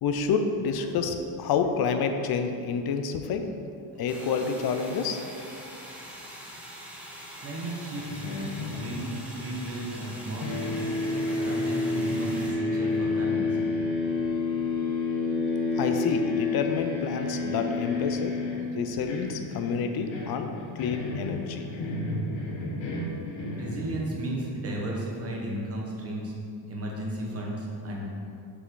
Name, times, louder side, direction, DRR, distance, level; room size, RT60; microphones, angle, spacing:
voice 1, 0.0-3.5 4.0-5.2 15.8-18.4 18.8-20.5 20.8-21.7, left 5 dB, 55° left, 7 dB, 0.6 m, -28 dB
sound 1, 4.1-12.5, equal, 5° right, 1.0 m, -44 dB
voice 2, 7.4-8.2 8.7-10.5 11.4-13.6 23.5-26.3 26.7-28.1, right 1 dB, 30° right, -2 dB, 1.2 m, -34 dB
sound 2, 8.0-10.1 10.4-24.4, left 3 dB, 85° left, 1.4 m, -30 dB
6.0 x 6.0 x 3.8 m, 2.6 s
cardioid pair, 155°, 45 cm